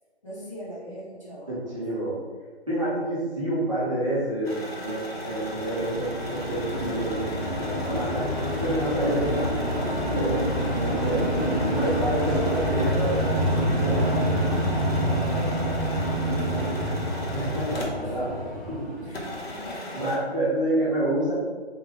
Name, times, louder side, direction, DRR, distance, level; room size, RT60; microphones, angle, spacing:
voice 1, 0.2-1.6 14.9-16.7 18.0-18.3 19.0-20.0, right 1 dB, 30° left, -11 dB, 1.3 m, -42 dB
voice 2, 1.5-2.2 2.7-8.3 8.6-10.4 10.8-14.5 17.3-18.4 18.7-19.1 19.9-21.3, right 1 dB, 30° right, -10 dB, 0.6 m, -28 dB
sound 1, 4.4-18.2 18.5-18.6 19.1-20.2, left 1 dB, 65° left, 0.8 m, -37 dB
sound 2, 5.2-19.7, equal, ahead, 0.3 m, -27 dB
3.7 x 2.0 x 3.3 m, 1.5 s
figure-of-eight pair, 155°, 33 cm